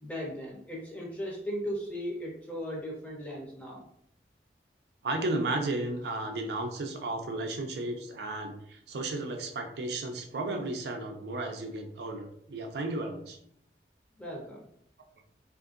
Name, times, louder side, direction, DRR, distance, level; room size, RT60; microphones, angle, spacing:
voice 1, 0.0-3.8 14.2-14.6, equal, 10° left, -3 dB, 0.7 m, -37 dB
voice 2, 5.0-13.4, right 2 dB, 70° right, 3 dB, 0.5 m, -34 dB
3.6 x 2.5 x 2.4 m, 0.69 s
head